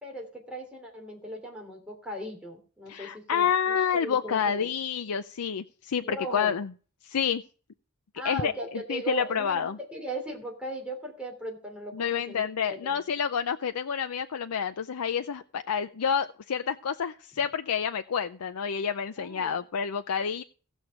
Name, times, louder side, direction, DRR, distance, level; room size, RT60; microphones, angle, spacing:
voice 1, 0.0-4.7 6.0-6.5 8.1-13.0 19.2-19.6, right 1 dB, 5° right, 0 dB, 3.0 m, -38 dB
voice 2, 2.9-6.7 7.0-7.4 8.2-8.5 8.9-9.8 11.9-20.4, left 7 dB, 90° left, 8 dB, 0.5 m, -29 dB
16.5 x 6.5 x 4.7 m, 0.40 s
head